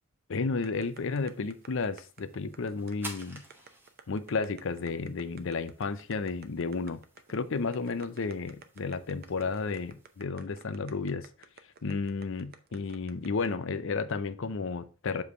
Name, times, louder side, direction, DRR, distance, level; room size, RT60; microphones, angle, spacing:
voice 1, 0.3-3.4 4.1-7.0 7.3-11.3 11.8-15.2, left 4 dB, 65° left, 0.6 m, -32 dB
sound 1, 0.6-13.5, right 6 dB, 50° right, 0.6 m, -52 dB
sound 2, 0.7-10.2, right 1 dB, 10° right, 1.2 m, -52 dB
7.2 x 3.3 x 5.5 m
head